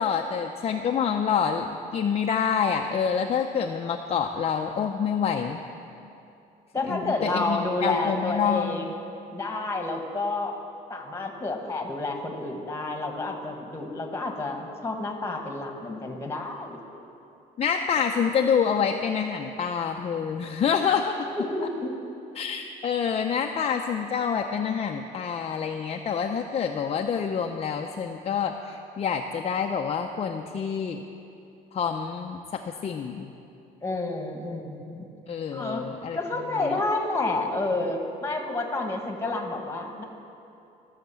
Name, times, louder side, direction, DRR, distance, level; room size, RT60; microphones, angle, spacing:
voice 1, 0.0-5.6 6.9-8.9 17.6-21.3 22.3-31.0 31.7-33.3 35.3-36.2 36.6-36.8, left 7 dB, 40° left, 3 dB, 0.6 m, -27 dB
voice 2, 6.7-8.9 9.3-10.5 10.9-16.8 21.3-21.9 33.8-35.1 35.5-35.9 36.1-40.0, left 2 dB, 15° left, 3 dB, 1.5 m, -29 dB
14.5 x 6.6 x 7.0 m, 2.7 s
cardioid pair, 110°, 17 cm